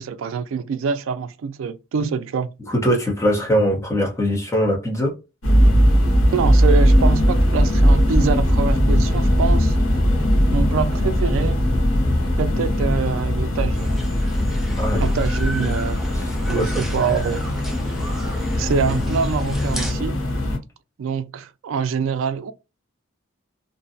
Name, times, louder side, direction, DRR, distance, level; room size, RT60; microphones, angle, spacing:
voice 1, 0.0-2.5 6.3-9.8 10.5-11.6 12.4-13.9 15.0-16.0 16.5-17.6 18.6-20.2 21.0-22.5, right 5 dB, 75° right, 0.3 m, -25 dB
voice 2, 2.7-5.2 14.8-15.1 15.6-15.7 16.1-16.9, equal, 15° left, 0.8 m, -22 dB
sound 1, 5.4-20.6, equal, 85° left, 0.9 m, -19 dB
sound 2, 13.7-19.9, equal, ahead, 0.4 m, -34 dB
2.6 x 2.1 x 2.5 m
head